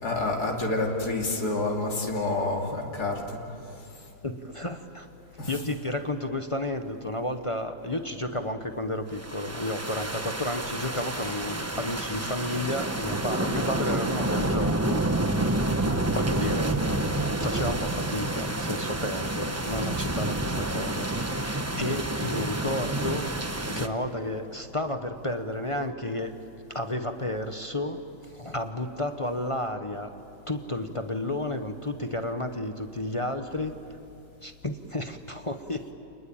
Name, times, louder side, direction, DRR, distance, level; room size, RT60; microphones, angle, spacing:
voice 1, 0.0-3.4 3.8-3.9 5.4-5.6, left 2 dB, 80° left, 0 dB, 3.3 m, -28 dB
voice 2, 4.2-5.1 5.5-15.5 16.1-16.8 17.3-23.3 23.7-26.3 26.7-28.0 28.3-30.1 30.5-33.7 34.4-35.8, left 1 dB, 25° left, 6 dB, 0.9 m, -32 dB
sound 1, 9.2-23.9, right 2 dB, 10° right, 0.9 m, -29 dB
29.5 x 20.5 x 8.8 m, 2.8 s
omnidirectional pair, 1.7 m